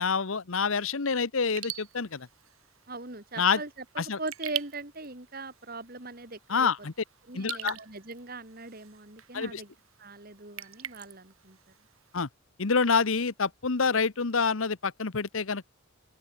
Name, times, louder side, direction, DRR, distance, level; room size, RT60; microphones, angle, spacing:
voice 1, 0.0-2.3 3.4-3.6 4.0-4.2 6.5-6.9 7.3-7.8 9.3-9.6 12.1-12.3 12.6-15.7, left 5 dB, 75° left, 1.0 m, -27 dB
Raindrop / Drip, 1.4-12.2, right 12 dB, 80° right, 3.3 m, -44 dB
voice 2, 2.9-3.7 3.9-6.7 7.3-9.7 10.0-11.6, right 2 dB, 45° right, 2.8 m, -40 dB
open air
head